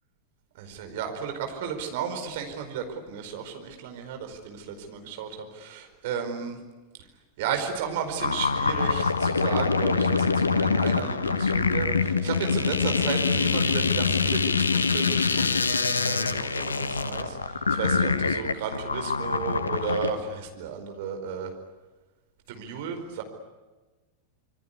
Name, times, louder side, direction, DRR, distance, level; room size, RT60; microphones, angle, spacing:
voice 1, 0.6-6.6 7.4-21.5 22.5-23.2, right 7 dB, 50° right, 5 dB, 4.8 m, -34 dB
sound 1, 8.2-20.1, left 4 dB, 75° left, 1.3 m, -25 dB
27.0 x 23.5 x 8.4 m, 1.2 s
figure-of-eight pair, 90°, 0 cm